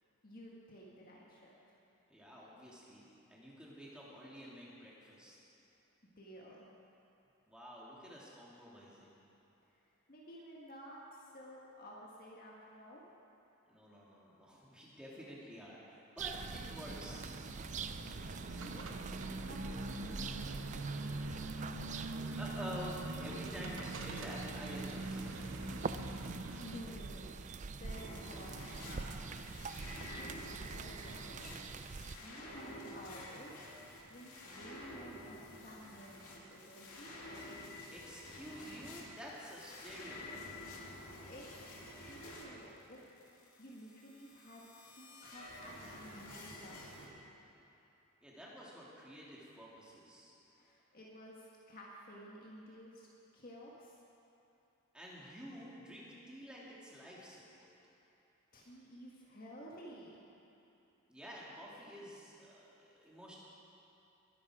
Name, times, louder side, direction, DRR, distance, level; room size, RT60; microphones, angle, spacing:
voice 1, 0.2-1.6 6.2-6.7 9.6-9.8 10.1-13.0 18.1-18.9 19.4-20.8 26.1-27.4 27.7-29.3 30.1-31.5 32.2-33.6 34.1-37.1 40.9-41.6 41.9-43.0 43.2-47.3 50.5-54.0 58.1-58.2 58.5-60.3, equal, 40° left, -4 dB, 1.7 m, -53 dB
voice 2, 2.1-5.4 7.5-9.1 13.7-17.3 22.4-26.0 37.9-40.5 48.2-50.3 54.9-57.7 61.1-63.4, equal, 5° right, -6 dB, 2.7 m, -50 dB
sound 1, 16.2-32.2, right 4 dB, 35° right, 0.4 m, -45 dB
sound 2, 16.3-26.8, right 2 dB, 65° right, 1.1 m, -43 dB
sound 3, 27.9-47.1, left 1 dB, 85° left, 2.3 m, -50 dB
22.0 x 11.0 x 5.0 m, 2.9 s
head